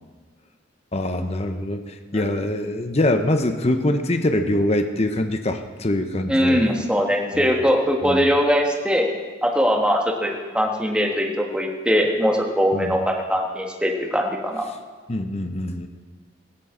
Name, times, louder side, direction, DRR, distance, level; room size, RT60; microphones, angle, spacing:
voice 1, 0.9-6.6 7.3-7.5 8.0-8.3 12.7-13.0 15.1-15.9, left 1 dB, 35° left, 7 dB, 0.8 m, -24 dB
voice 2, 6.3-9.1 9.4-14.7, equal, 5° right, 0 dB, 1.5 m, -21 dB
16.5 x 15.0 x 3.9 m, 1.4 s
head